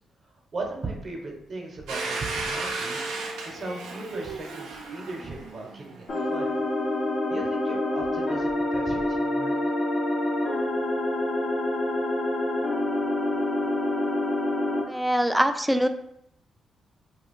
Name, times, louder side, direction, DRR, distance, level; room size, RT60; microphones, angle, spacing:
voice 1, 0.2-3.0 3.4-6.5 7.3-9.5, right 2 dB, 50° right, 0 dB, 0.8 m, -37 dB
Domestic sounds home sounds, 1.9-6.5, right 3 dB, 85° right, 0.5 m, -34 dB
sound 1, 6.1-14.8, left 1 dB, 55° left, 0.7 m, -26 dB
voice 2, 14.8-15.9, equal, 5° right, 8 dB, 0.3 m, -23 dB
2.3 x 2.2 x 3.6 m, 0.75 s
supercardioid pair, 50°, 0 cm